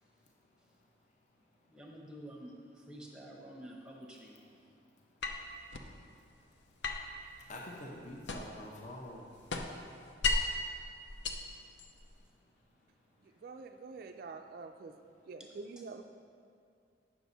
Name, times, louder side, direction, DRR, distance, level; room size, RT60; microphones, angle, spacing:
voice 1, 1.7-4.6, right 1 dB, 5° right, -1 dB, 0.9 m, -49 dB
sound 1, 5.2-5.9 6.8-8.7 9.0-10.6 11.1-12.2, left 3 dB, 65° left, 0.6 m, -36 dB
voice 2, 7.4-9.4, left 1 dB, 40° left, -1 dB, 0.8 m, -46 dB
voice 3, 13.4-14.9 15.3-16.0, right 4 dB, 50° right, 6 dB, 0.3 m, -46 dB
9.1 x 6.1 x 4.0 m, 2.3 s
head